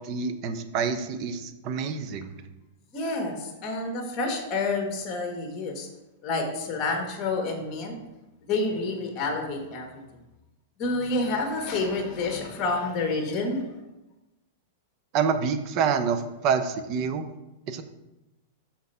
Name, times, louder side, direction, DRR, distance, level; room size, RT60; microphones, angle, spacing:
voice 1, 0.0-2.3 15.1-17.3 17.7-17.8, right 6 dB, 35° right, 9 dB, 0.7 m, -27 dB
voice 2, 2.9-5.9 6.2-7.9 8.5-10.0 10.8-13.7, left 3 dB, 30° left, 3 dB, 1.5 m, -29 dB
6.3 x 4.1 x 5.6 m, 0.98 s
supercardioid pair, 155°, 0 cm